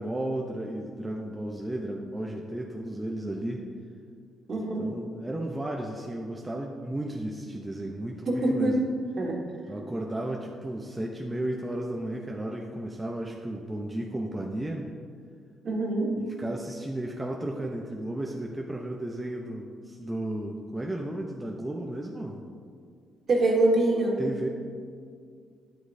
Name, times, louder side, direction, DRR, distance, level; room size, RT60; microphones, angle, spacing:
voice 1, 0.0-3.7 4.8-8.8 9.7-14.9 16.4-22.4 24.2-24.5, right 1 dB, 15° right, 0 dB, 0.6 m, -34 dB
voice 2, 4.5-4.8 8.3-8.8 9.2-9.4 15.6-16.1 23.3-24.1, right 2 dB, 50° right, -1 dB, 1.6 m, -24 dB
9.5 x 8.2 x 2.7 m, 2.1 s
cardioid pair, 90°, 0 cm